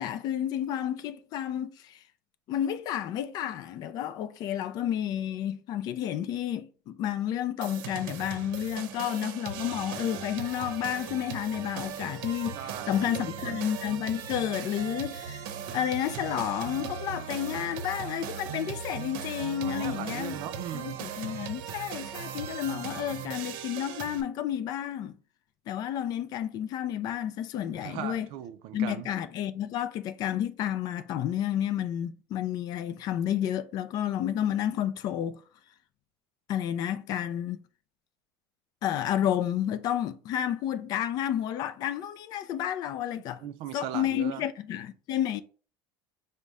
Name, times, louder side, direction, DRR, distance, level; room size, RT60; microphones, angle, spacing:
voice 1, 0.0-2.0 2.5-15.4 15.7-20.4 20.7-25.1 25.7-28.3 28.7-35.4 36.5-37.6 38.8-43.4 43.7-45.4, left 10 dB, 40° left, 0.4 m, -31 dB
sound 1, 7.6-24.2, right 7 dB, 90° right, 0.7 m, -38 dB
voice 2, 12.6-13.6 19.6-21.0 27.8-29.1 43.4-44.4, right 11 dB, 55° right, 0.4 m, -38 dB
5.2 x 2.2 x 4.6 m
cardioid pair, 170°, 11 cm